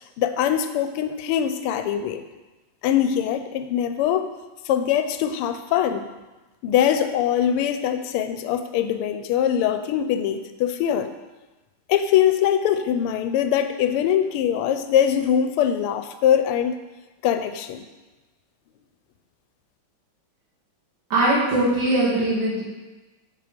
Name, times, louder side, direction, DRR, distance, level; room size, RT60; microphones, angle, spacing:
voice 1, 0.2-2.2 2.8-4.3 4.6-6.0 6.6-11.1 11.9-16.8 17.2-17.8, left 9 dB, 90° left, 9 dB, 1.5 m, -22 dB
voice 2, 21.1-22.6, right 1 dB, 60° right, -7 dB, 3.0 m, -21 dB
7.6 x 4.9 x 5.1 m, 1.2 s
omnidirectional pair, 2.4 m